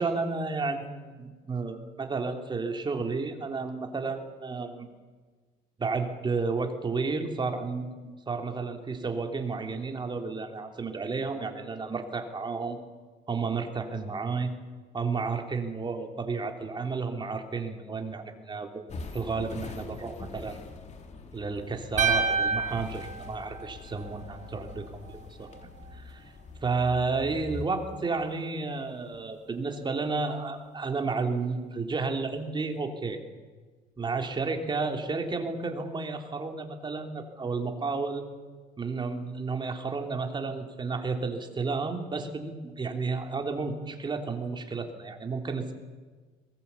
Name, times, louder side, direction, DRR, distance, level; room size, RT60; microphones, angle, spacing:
voice 1, 0.0-4.9 5.8-12.8 13.3-14.5 14.9-18.8 19.1-20.6 21.3-25.5 25.9-26.2 26.6-33.2 34.0-38.2 38.8-45.7, right 4 dB, 25° right, 4 dB, 3.2 m, -32 dB
sound 1, 18.9-27.7, left 3 dB, 40° left, 3.3 m, -43 dB
sound 2, 22.0-24.2, right 5 dB, 45° right, 2.6 m, -28 dB
22.0 x 20.0 x 8.4 m, 1.4 s
cardioid pair, 110°, 17 cm